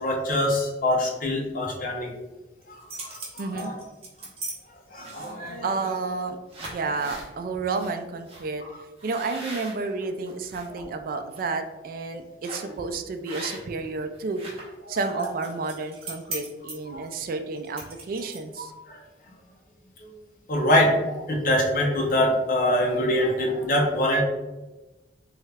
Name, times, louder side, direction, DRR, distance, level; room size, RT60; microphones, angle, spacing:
voice 1, 0.0-2.1 2.7-2.8 3.1-3.8 4.9-5.7 10.7-10.8 14.9-15.0 16.9-17.0 18.6-19.0 20.0-20.1 20.5-24.2, left 1 dB, 50° left, 0 dB, 0.7 m, -24 dB
sound 1, 2.6-4.5 5.0-5.5 6.1-6.2 6.5-7.3 7.8-7.9 8.3-8.4 9.0-10.7 11.1-11.4 12.4-12.8 13.2-13.8 14.1-18.6, right 2 dB, 35° right, 0.8 m, -39 dB
voice 2, 3.4-3.7 5.6-8.6 9.0-14.4 14.9-18.7, right 3 dB, 50° right, 7 dB, 0.3 m, -31 dB
3.1 x 2.4 x 3.2 m, 1.1 s
head